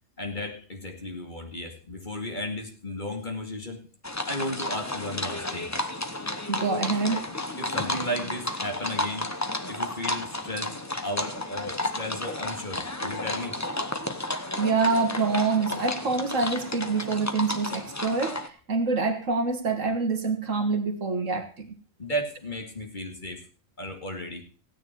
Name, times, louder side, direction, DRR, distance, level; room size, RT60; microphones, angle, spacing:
voice 1, 0.2-3.9 4.3-5.7 7.6-9.3 9.7-13.6 22.0-23.4 23.8-24.4, equal, 35° left, 3 dB, 2.5 m, -34 dB
sound 1, 4.0-18.5, left 1 dB, 15° left, 0.9 m, -32 dB
voice 2, 6.5-7.3 14.6-21.7, right 4 dB, 70° right, 5 dB, 2.0 m, -26 dB
16.0 x 9.7 x 4.5 m, 0.37 s
omnidirectional pair, 1.4 m